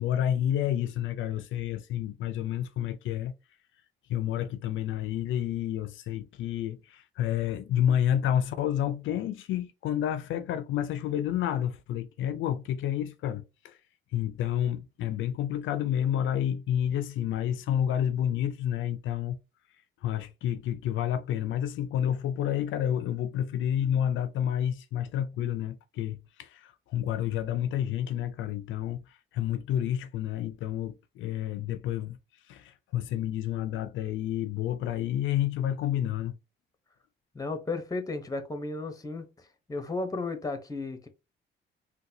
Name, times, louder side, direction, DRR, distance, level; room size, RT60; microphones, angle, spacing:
voice 1, 0.0-3.3 4.1-13.8 14.1-19.4 20.0-32.2 32.5-36.3, left 10 dB, 75° left, 0.4 m, -30 dB
voice 2, 37.3-41.1, left 3 dB, 20° left, 0.9 m, -34 dB
3.8 x 2.2 x 2.7 m
cardioid pair, 90°, 20 cm